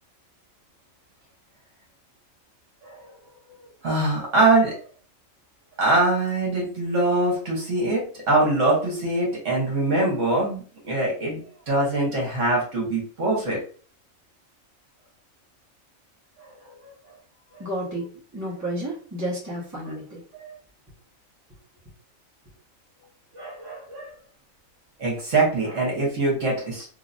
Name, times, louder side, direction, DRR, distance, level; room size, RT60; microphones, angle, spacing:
voice 1, 3.8-4.8 5.8-13.6 16.4-16.5 16.8-16.9 17.5-17.6 19.8-19.9 20.4-20.5 23.3-24.1 25.0-26.8, right 2 dB, 60° right, -3 dB, 1.5 m, -23 dB
voice 2, 17.6-20.2, right 1 dB, 15° right, -5 dB, 1.2 m, -31 dB
3.3 x 2.8 x 2.6 m, 0.43 s
omnidirectional pair, 1.4 m